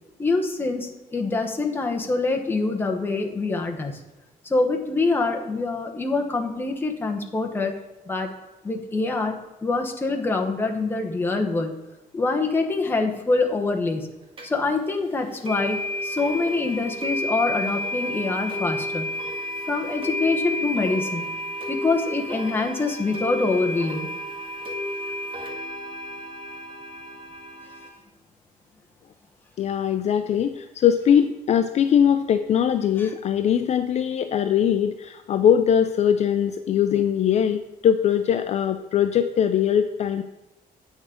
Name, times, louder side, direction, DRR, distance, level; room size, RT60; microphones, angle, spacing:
voice 1, 0.2-3.9 4.5-7.7 8.1-8.3 8.6-11.7 12.1-14.1 14.4-19.1 19.7-21.4 21.7-24.1 33.0-33.1, left 3 dB, 15° left, 2 dB, 1.0 m, -25 dB
sound 1, 14.4-14.5 15.4-27.9, left 1 dB, 35° right, 1.8 m, -31 dB
voice 2, 29.6-40.2, left 9 dB, 45° left, 9 dB, 0.4 m, -21 dB
8.9 x 6.4 x 5.0 m, 1.0 s
cardioid pair, 180°, 15 cm